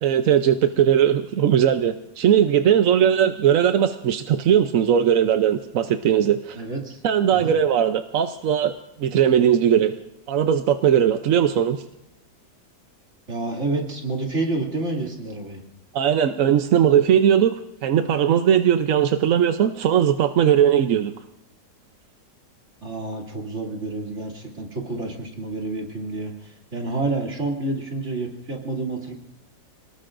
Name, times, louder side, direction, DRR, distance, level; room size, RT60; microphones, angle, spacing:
voice 1, 0.0-6.6 7.0-8.7 9.0-9.9 10.3-11.8 15.9-17.5 17.8-21.1, right 9 dB, 60° right, 8 dB, 0.9 m, -19 dB
voice 2, 6.5-7.0 7.3-7.6 13.3-15.6 22.8-29.1, right 2 dB, 40° right, -1 dB, 3.0 m, -29 dB
28.0 x 19.0 x 2.6 m, 0.87 s
omnidirectional pair, 1.9 m